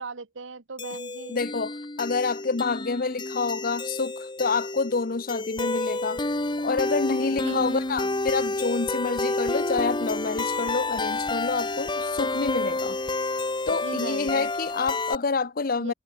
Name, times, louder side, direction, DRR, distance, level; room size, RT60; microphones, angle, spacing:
voice 1, 0.0-1.4 5.6-5.8 7.4-8.1 13.8-14.5 15.8-15.9, right 3 dB, 85° right, 1.3 m, -38 dB
sound 1, 0.8-15.2, left 2 dB, 25° left, 1.4 m, -29 dB
voice 2, 1.3-6.2 6.6-13.0 13.7-15.9, left 4 dB, 50° left, 0.8 m, -28 dB
head